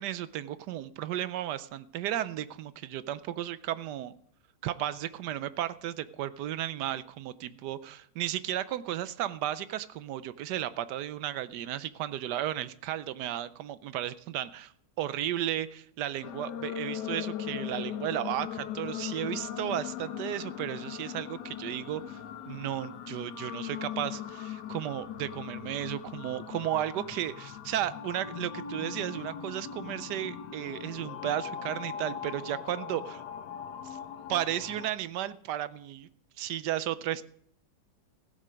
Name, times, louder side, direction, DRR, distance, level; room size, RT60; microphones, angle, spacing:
voice 1, 0.0-4.1 4.6-14.7 15.0-22.2 22.5-33.2 33.8-34.0 34.3-36.1 36.4-37.2, right 12 dB, 75° right, 15 dB, 1.2 m, -34 dB
sound 1, 16.2-34.9, left 9 dB, 75° left, 1.4 m, -39 dB
16.0 x 7.4 x 5.1 m, 0.66 s
omnidirectional pair, 1.9 m